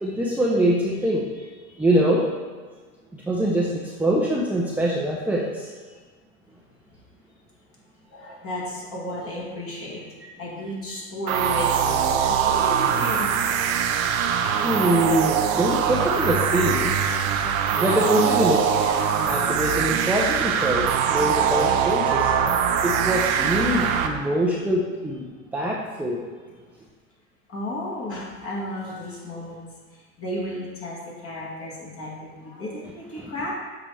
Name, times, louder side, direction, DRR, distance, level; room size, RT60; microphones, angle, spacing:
voice 1, 0.0-1.5 1.8-2.2 3.1-5.7 14.6-17.0 17.8-18.9 19.3-22.5 22.8-25.2 25.5-26.2, equal, 5° right, -4 dB, 0.7 m, -24 dB
voice 2, 8.1-10.0 10.4-13.6 27.5-33.5, left 1 dB, 30° left, -5 dB, 2.0 m, -33 dB
sound 1, 11.3-24.1, right 8 dB, 75° right, 0.7 m, -22 dB
7.5 x 4.7 x 3.4 m, 1.5 s
hypercardioid pair, 95°, 42 cm